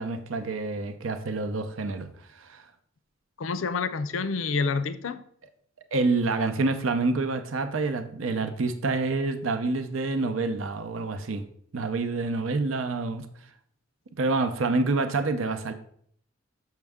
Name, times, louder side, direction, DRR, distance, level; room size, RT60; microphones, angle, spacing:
voice 1, 0.0-2.1 2.3-2.6 5.9-11.4 11.7-13.3 14.2-15.7, right 3 dB, 90° right, 0.7 m, -27 dB
voice 2, 3.4-5.2, left 4 dB, 85° left, 0.5 m, -28 dB
6.5 x 5.9 x 3.5 m
head